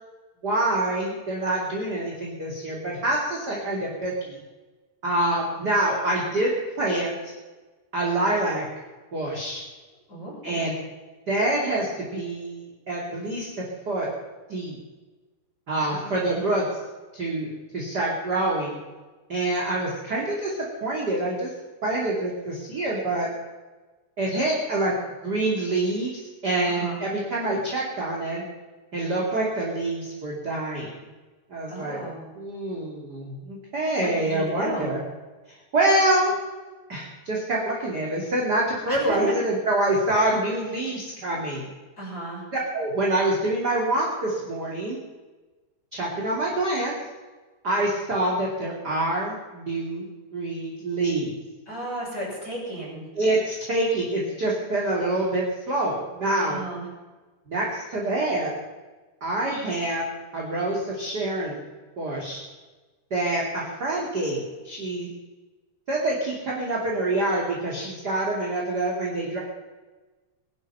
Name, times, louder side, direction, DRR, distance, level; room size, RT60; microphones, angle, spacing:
voice 1, 0.4-4.4 5.0-6.5 6.8-7.1 7.9-8.7 9.1-9.6 10.4-10.7 11.3-14.1 14.5-14.8 15.7-16.7 17.1-18.8 19.3-21.5 21.8-23.3 24.2-24.9 25.2-28.4 28.9-31.0 31.5-32.0 32.3-35.0 35.7-36.3 36.9-41.7 42.5-45.0 45.9-46.9 47.6-51.4 53.2-56.6 57.5-58.5 59.2-60.1 60.3-61.6 62.0-62.4 63.1-65.1 65.9-69.4, right 2 dB, 30° right, -4 dB, 2.5 m, -26 dB
voice 2, 10.1-10.7 15.9-16.4 26.7-27.0 31.7-32.2 34.0-34.9 38.9-39.2 42.0-42.4 51.7-53.0 56.4-56.9, right 1 dB, 20° left, -5 dB, 7.1 m, -34 dB
21.0 x 11.0 x 5.7 m, 1.2 s
omnidirectional pair, 4.8 m